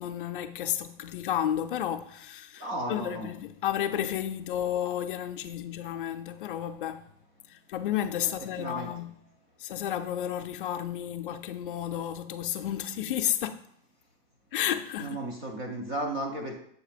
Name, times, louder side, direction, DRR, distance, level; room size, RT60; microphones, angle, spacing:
voice 1, 0.0-7.1 7.5-9.2 9.6-13.6 14.5-15.2, left 10 dB, 60° left, 0.5 m, -32 dB
voice 2, 2.6-3.3 8.6-8.9 15.0-16.6, right 1 dB, 15° right, 0.4 m, -34 dB
7.4 x 2.9 x 5.0 m
supercardioid pair, 180°, 29 cm